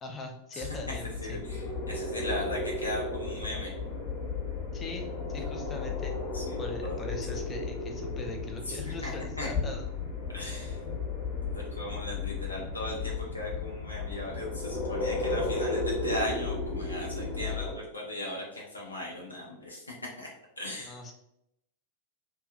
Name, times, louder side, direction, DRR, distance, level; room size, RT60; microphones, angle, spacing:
voice 1, 0.0-1.4 4.7-6.1 6.6-9.9 20.8-21.1, left 2 dB, 25° left, 3 dB, 0.5 m, -41 dB
sound 1, 0.6-17.8, left 3 dB, 40° left, 1.1 m, -34 dB
voice 2, 1.2-1.6 1.9-3.7 6.3-7.0 8.7-9.1 9.4-9.5 10.3-10.8 11.5-20.3 20.6-20.9, left 1 dB, 80° left, -3 dB, 0.6 m, -37 dB
2.6 x 2.2 x 2.3 m, 0.79 s
figure-of-eight pair, 90°, 0 cm